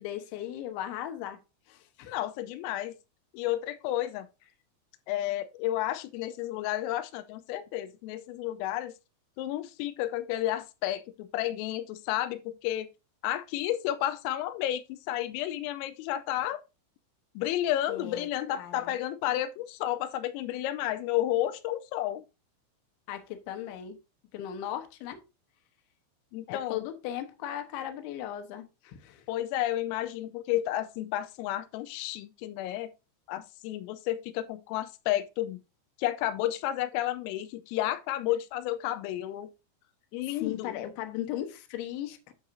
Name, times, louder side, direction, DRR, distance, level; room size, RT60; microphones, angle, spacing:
voice 1, 0.0-1.4 1.7-2.1 17.9-18.3 18.6-18.9 23.1-24.0 24.3-25.2 26.5-29.2 40.3-42.3, left 11 dB, 75° left, 3.2 m, -37 dB
voice 2, 2.1-2.9 3.3-4.3 5.1-8.9 9.4-12.9 13.2-16.6 17.4-22.2 26.3-26.8 29.3-32.9 33.3-35.6 36.0-39.5 40.1-40.8, left 13 dB, 90° left, 3.3 m, -31 dB
11.0 x 6.4 x 2.6 m
omnidirectional pair, 5.9 m